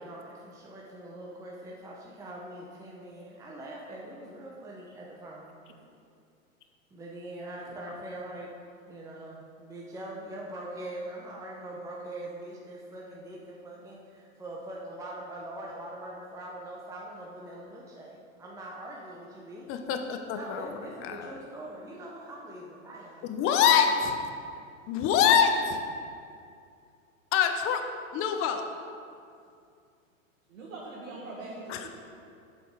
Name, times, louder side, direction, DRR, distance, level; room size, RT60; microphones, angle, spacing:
voice 1, 0.0-5.5 6.9-8.5 8.9-19.8 20.3-23.3, right 1 dB, 10° right, -3 dB, 0.8 m, -42 dB
voice 2, 19.7-20.7 21.0-21.3 23.3-24.2 24.9-25.9 27.3-27.8 28.1-28.7 31.7-31.9, left 7 dB, 30° left, 6 dB, 0.8 m, -25 dB
voice 3, 30.5-31.9, right 2 dB, 75° right, -5 dB, 1.8 m, -42 dB
8.0 x 7.0 x 4.9 m, 2.4 s
hypercardioid pair, 115°, 40 cm